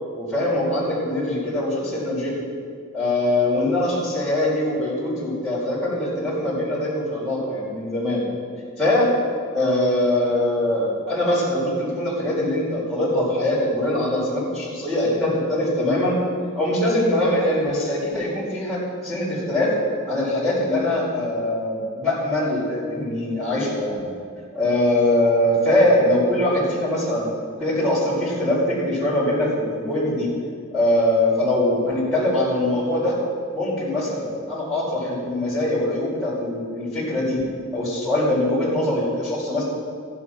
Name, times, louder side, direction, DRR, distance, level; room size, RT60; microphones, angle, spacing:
voice 1, 0.1-2.4 2.9-8.2 8.8-9.1 9.5-16.2 16.5-19.7 20.1-24.1 24.5-27.3 27.6-30.3 30.7-33.2 33.5-37.4 37.7-39.6, left 1 dB, ahead, -11 dB, 4.7 m, -22 dB
15.0 x 10.5 x 6.1 m, 2.1 s
head